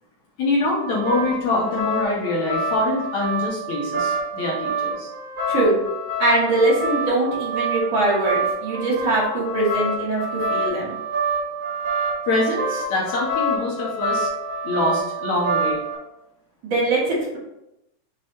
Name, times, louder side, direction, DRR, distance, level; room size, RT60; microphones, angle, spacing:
voice 1, 0.4-5.1 12.3-14.3 14.6-15.8, left 2 dB, 65° left, -3 dB, 2.1 m, -24 dB
sound 1, 0.6-15.9, right 1 dB, 20° right, 1.7 m, -27 dB
voice 2, 5.5-5.8 6.2-11.0 16.6-17.4, right 2 dB, 50° right, -6 dB, 3.5 m, -22 dB
6.3 x 4.1 x 4.3 m, 0.88 s
omnidirectional pair, 3.9 m